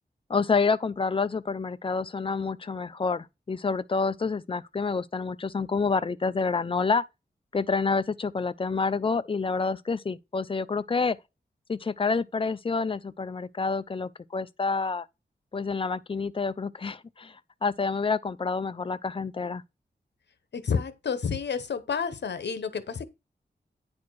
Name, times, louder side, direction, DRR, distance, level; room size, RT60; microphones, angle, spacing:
voice 1, 0.3-7.0 7.5-11.2 11.7-15.1 15.5-17.4 17.6-19.6, left 4 dB, 30° left, 0.5 m, -28 dB
voice 2, 20.5-23.1, left 6 dB, 80° left, 1.0 m, -30 dB
9.5 x 4.3 x 4.7 m
wide cardioid pair, 135°, 18 cm